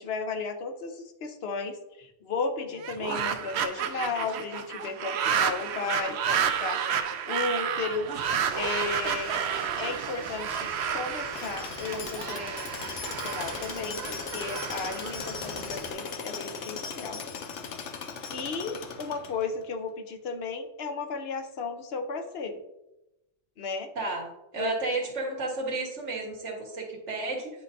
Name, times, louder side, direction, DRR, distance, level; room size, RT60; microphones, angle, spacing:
voice 1, 0.0-9.5 9.8-17.2 17.8-17.9 18.3-22.6 23.6-23.9 24.6-25.0, left 4 dB, 65° left, 6 dB, 1.0 m, -34 dB
sound 1, 2.7-15.9, right 8 dB, 70° right, 0.8 m, -31 dB
sound 2, 8.1-15.9, equal, 30° left, 1.4 m, -45 dB
Tools, 11.3-19.6, left 5 dB, 90° left, 1.0 m, -38 dB
voice 2, 24.0-24.3 24.5-27.5, right 3 dB, 85° right, -1 dB, 1.8 m, -32 dB
10.0 x 4.5 x 2.7 m, 0.94 s
omnidirectional pair, 1.2 m